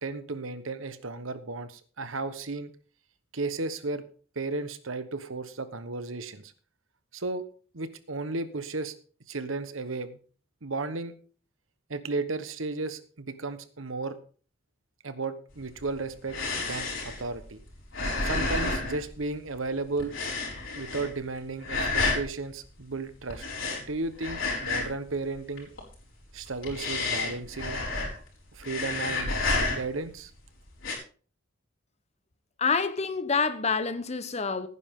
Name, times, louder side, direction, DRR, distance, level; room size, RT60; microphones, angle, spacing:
voice 1, 0.0-2.7 3.3-4.0 4.3-6.5 7.1-7.4 7.7-8.9 9.3-10.2 10.6-11.1 11.9-14.2 15.0-16.4 16.7-17.6 18.2-20.1 20.7-23.4 23.9-25.7 26.3-27.8 28.5-29.3 29.7-30.3, right 3 dB, 90° right, 1.2 m, -34 dB
sound 1, 15.6-19.7 20.0-21.3 21.6-22.3 23.3-25.1 25.4-25.9 26.4-28.3 28.6-30.1 30.7-31.0, left 3 dB, 75° left, 4.6 m, -30 dB
voice 2, 32.6-34.7, left 5 dB, 35° left, 1.0 m, -27 dB
16.0 x 9.9 x 3.8 m
head